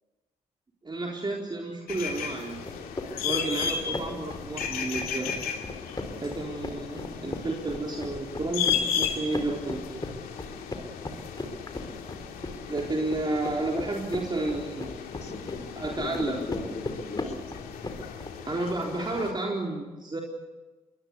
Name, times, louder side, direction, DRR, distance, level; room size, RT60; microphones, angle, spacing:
voice 1, 0.8-2.6 3.2-5.3 6.2-10.0 12.7-15.0 15.8-16.4 18.5-20.2, right 2 dB, 30° right, 0 dB, 3.9 m, -31 dB
sound 1, 1.9-19.3, left 7 dB, 75° left, 2.6 m, -35 dB
sound 2, 2.7-18.3, left 2 dB, 25° left, 4.1 m, -38 dB
voice 2, 14.3-14.7 15.1-15.7 16.0-17.4, left 3 dB, 50° left, 3 dB, 4.5 m, -38 dB
23.0 x 20.0 x 8.4 m, 1.2 s
hypercardioid pair, 45°, 15 cm